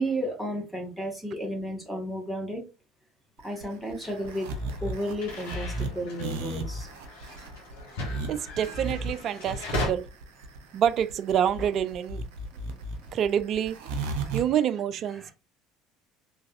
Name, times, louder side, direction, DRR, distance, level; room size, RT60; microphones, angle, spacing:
voice 1, 0.0-2.6 3.4-4.5 4.8-6.9 13.0-13.2 14.1-14.4 15.1-15.3, right 1 dB, ahead, 1.4 m, -33 dB
sound 1, 3.4-14.4, right 2 dB, 65° right, 0.7 m, -34 dB
sound 2, 4.0-9.9, left 1 dB, 65° left, 1.5 m, -37 dB
voice 2, 8.3-10.0 10.7-12.2 13.1-13.8 14.3-15.3, right 9 dB, 45° right, 0.4 m, -27 dB
3.9 x 3.2 x 2.5 m
figure-of-eight pair, 65°, 0 cm